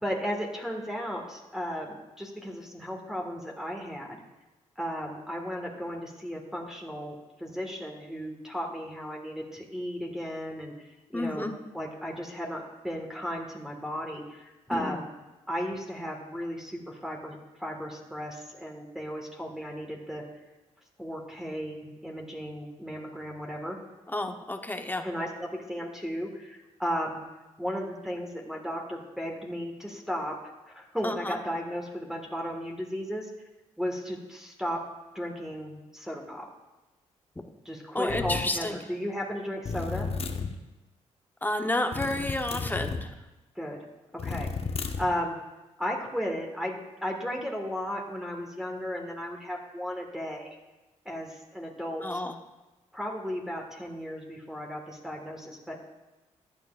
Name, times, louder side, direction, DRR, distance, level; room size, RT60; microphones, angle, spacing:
voice 1, 0.0-4.2 4.8-10.7 11.1-15.1 15.5-20.2 21.0-23.8 25.0-27.2 27.6-30.3 30.7-33.3 33.8-34.8 35.2-36.5 37.7-40.1 43.6-43.8 44.1-44.5 45.0-45.4 45.8-50.6 51.1-52.2 52.9-55.8, equal, 5° right, 0 dB, 1.8 m, -35 dB
voice 2, 11.1-11.5 14.7-15.0 24.1-25.0 31.0-31.4 37.4-37.5 37.9-38.8 41.4-43.1 52.0-52.4, left 1 dB, 15° left, 6 dB, 0.9 m, -31 dB
sound 1, 38.1-38.5 39.7-40.6 41.9-43.1 44.2-45.1, left 5 dB, 45° left, 0.9 m, -33 dB
14.5 x 9.2 x 2.5 m, 1.1 s
supercardioid pair, 60°, 13 cm